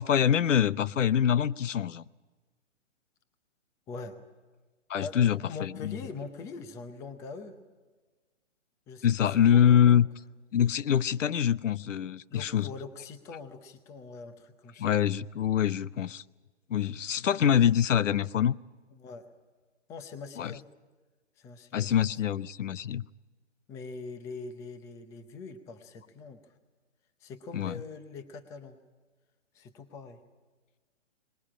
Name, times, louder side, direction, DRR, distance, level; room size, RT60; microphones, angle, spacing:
voice 1, 0.0-2.0 4.9-5.9 9.0-10.1 10.5-12.7 14.8-16.2 16.7-18.5 20.4-20.5 21.7-23.1 27.5-27.7, left 9 dB, 85° left, 19 dB, 0.7 m, -25 dB
voice 2, 3.9-4.2 5.0-7.6 8.9-10.0 12.3-15.2 18.9-19.3 19.9-20.6 21.4-21.9 23.7-26.5 27.2-28.8 29.5-30.2, left 4 dB, 10° left, 10 dB, 0.6 m, -43 dB
20.5 x 20.0 x 8.7 m, 1.3 s
hypercardioid pair, 150°, 37 cm